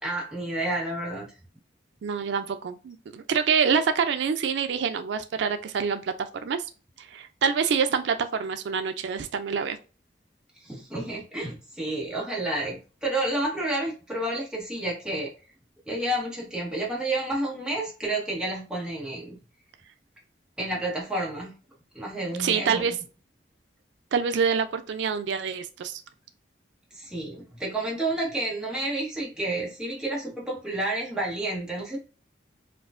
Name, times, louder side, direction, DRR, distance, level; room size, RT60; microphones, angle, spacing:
voice 1, 0.0-1.3 10.6-15.3 15.9-19.4 20.6-21.5 21.9-22.9 26.9-32.0, right 1 dB, 5° right, -5 dB, 1.2 m, -30 dB
voice 2, 2.0-6.6 7.0-9.8 22.4-22.9 24.1-26.0, right 6 dB, 85° right, 9 dB, 0.4 m, -26 dB
4.4 x 2.4 x 2.5 m, 0.34 s
head